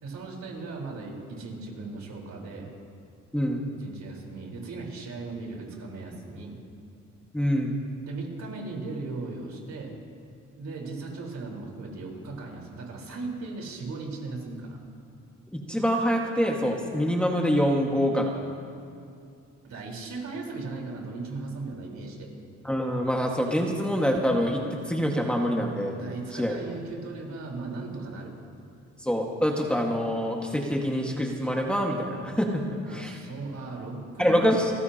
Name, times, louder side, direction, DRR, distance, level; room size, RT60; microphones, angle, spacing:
voice 1, 0.0-2.7 3.8-6.6 8.0-9.9 10.5-14.8 19.6-22.3 25.9-28.4 32.8-34.6, right 3 dB, 65° right, -1 dB, 4.3 m, -37 dB
voice 2, 7.3-7.8 15.5-18.4 22.6-26.0 26.3-26.6 29.0-32.6 32.9-33.2 34.2-34.7, equal, 5° left, -1 dB, 1.7 m, -25 dB
30.0 x 14.5 x 2.9 m, 2.5 s
cardioid pair, 90°, 30 cm